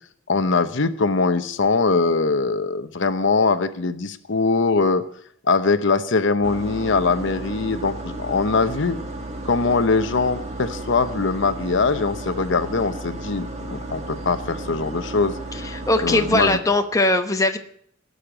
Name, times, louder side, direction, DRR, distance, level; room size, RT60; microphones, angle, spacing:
voice 1, 0.3-5.0 5.4-9.0 9.4-15.4 16.0-16.6, left 4 dB, 65° left, 10 dB, 0.9 m, -22 dB
sound 1, 6.4-16.6, right 2 dB, 35° right, 1.8 m, -33 dB
voice 2, 15.5-17.6, left 2 dB, 15° left, 6 dB, 0.9 m, -20 dB
17.0 x 6.6 x 8.8 m, 0.65 s
head